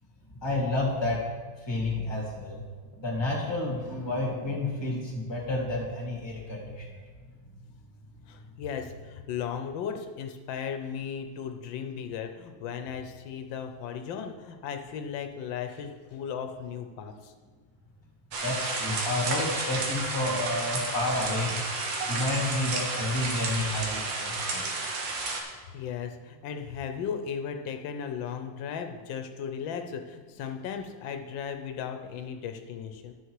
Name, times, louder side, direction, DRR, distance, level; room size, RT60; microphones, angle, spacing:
voice 1, 0.4-1.3 1.6-2.6 2.9-7.0 18.4-21.6 22.0-24.7, left 2 dB, 15° left, -3 dB, 2.0 m, -30 dB
voice 2, 8.3-17.3 25.7-33.1, left 7 dB, 90° left, 6 dB, 1.5 m, -36 dB
sound 1, 18.3-25.4, right 3 dB, 85° right, 1.9 m, -31 dB
11.0 x 6.6 x 4.7 m, 1.4 s
omnidirectional pair, 2.0 m